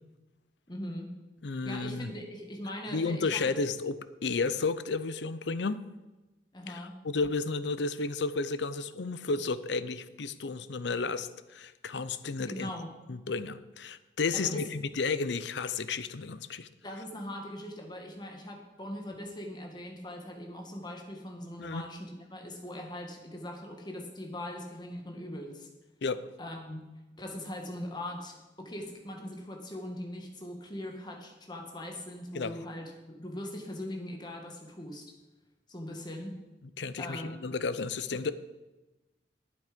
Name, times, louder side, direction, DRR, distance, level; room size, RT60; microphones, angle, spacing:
voice 1, 0.7-1.1 1.6-3.5 6.5-6.9 12.5-12.9 14.3-14.6 16.8-25.7 26.4-26.8 27.2-35.0 35.7-36.3 37.0-37.3, left 1 dB, 25° left, 2 dB, 1.8 m, -40 dB
voice 2, 1.4-2.1 2.9-4.0 4.2-5.9 6.7-6.8 7.0-12.7 13.1-16.7 21.6-21.8 26.0-26.3 32.3-32.6 36.8-38.3, left 4 dB, 75° left, 14 dB, 0.6 m, -32 dB
11.5 x 9.5 x 5.2 m, 1.1 s
head